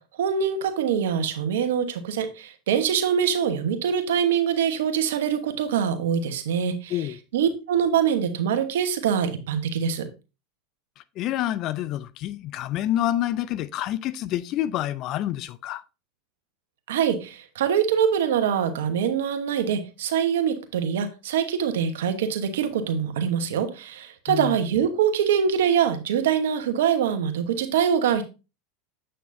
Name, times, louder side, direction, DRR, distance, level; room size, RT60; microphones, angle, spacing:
voice 1, 0.2-7.0 7.3-10.1 16.9-28.2, right 8 dB, 75° right, 1.1 m, -24 dB
voice 2, 11.2-15.8 24.3-24.6, left 13 dB, 50° left, 0.5 m, -27 dB
7.7 x 6.4 x 2.7 m
hypercardioid pair, 95°, 0 cm